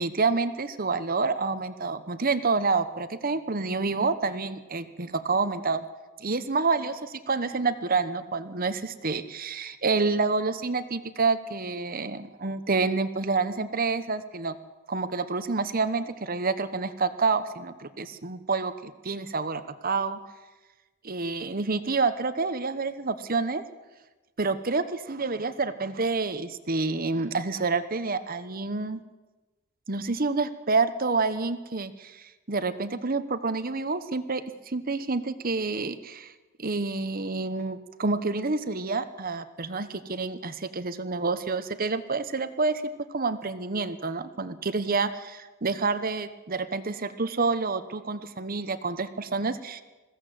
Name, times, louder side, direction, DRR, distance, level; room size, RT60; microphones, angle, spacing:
voice 1, 0.0-5.9 6.2-14.6 14.9-20.2 21.0-23.6 24.4-29.0 29.9-36.3 36.6-42.8 43.1-49.8, right 4 dB, 40° right, 12 dB, 1.1 m, -28 dB
21.0 x 16.0 x 7.8 m, 1.2 s
head